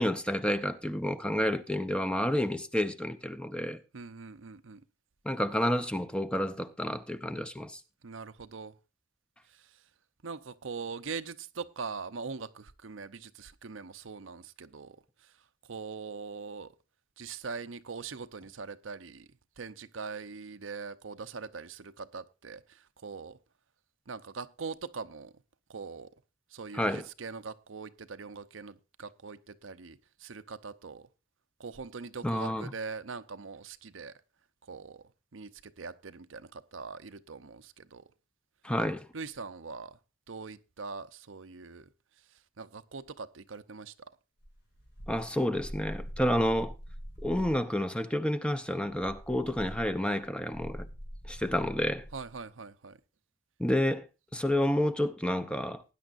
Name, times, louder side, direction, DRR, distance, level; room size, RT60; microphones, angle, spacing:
voice 1, 0.0-3.8 5.2-7.8 26.7-27.1 32.2-32.7 38.6-39.1 45.1-46.7 47.2-50.9 51.3-52.0 53.6-54.1 54.3-55.8, left 1 dB, 5° left, 0.8 m, -30 dB
voice 2, 3.9-4.8 8.0-8.7 10.2-15.0 15.7-16.7 17.2-19.3 19.6-23.4 24.1-25.3 25.7-26.1 26.5-31.1 31.6-34.2 34.7-35.0 35.3-38.0 39.1-40.0 40.3-41.9 42.6-44.1 52.1-53.0, right 4 dB, 75° right, 0.8 m, -42 dB
sound 1, 44.4-47.7 48.9-52.3, equal, 60° left, 3.3 m, -44 dB
19.0 x 10.0 x 2.6 m
head